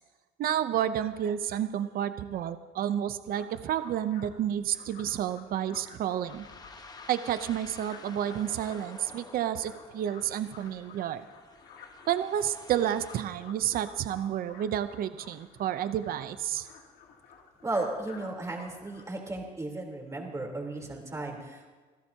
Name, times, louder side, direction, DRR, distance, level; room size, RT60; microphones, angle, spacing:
voice 1, 0.4-6.5 7.1-11.2 12.1-16.7, right 10 dB, 60° right, 11 dB, 0.7 m, -30 dB
sound 1, 3.3-19.0, left 6 dB, 75° left, 2.7 m, -53 dB
sound 2, 6.2-13.2, left 3 dB, 25° left, 1.2 m, -51 dB
voice 2, 17.6-21.7, right 2 dB, 20° right, 0 dB, 3.6 m, -35 dB
26.5 x 15.5 x 2.9 m, 1.4 s
cardioid pair, 110°, 17 cm